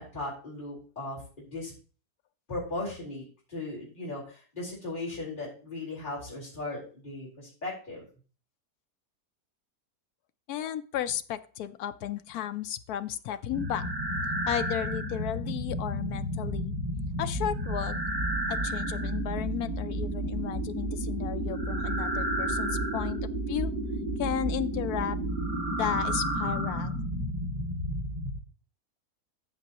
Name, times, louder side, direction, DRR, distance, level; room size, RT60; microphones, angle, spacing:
voice 1, 0.0-1.7 2.5-8.0, left 2 dB, 30° left, -7 dB, 4.5 m, -37 dB
voice 2, 10.5-13.8 14.5-16.7 17.2-18.0 18.5-23.7 24.2-25.2 25.8-27.0, left 11 dB, 75° left, 11 dB, 1.1 m, -34 dB
sound 1, 13.5-28.4, right 1 dB, 30° right, 2.2 m, -31 dB
13.5 x 6.0 x 2.9 m, 0.38 s
omnidirectional pair, 1.7 m